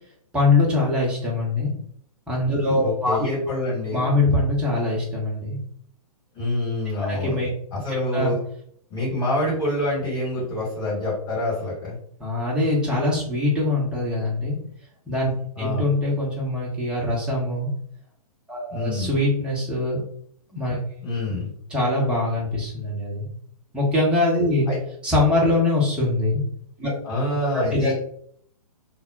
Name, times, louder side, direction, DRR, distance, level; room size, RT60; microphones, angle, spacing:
voice 1, 0.3-1.7 2.3-3.3 3.9-5.6 7.1-7.5 7.9-8.3 12.2-14.6 15.1-15.3 15.6-17.7 18.5-20.0 20.5-20.8 21.3-21.4 21.7-23.3 23.7-24.7 25.0-26.4 26.8-26.9 27.7-27.9, left 2 dB, 5° right, -5 dB, 0.7 m, -23 dB
voice 2, 2.8-4.1 6.3-7.3 7.7-8.4 8.9-11.9 15.6-15.8 18.7-19.2 21.0-21.5 24.7-24.8 27.0-27.9, left 1 dB, 20° left, -7 dB, 1.3 m, -26 dB
2.1 x 2.1 x 3.7 m, 0.64 s
figure-of-eight pair, 120°, 19 cm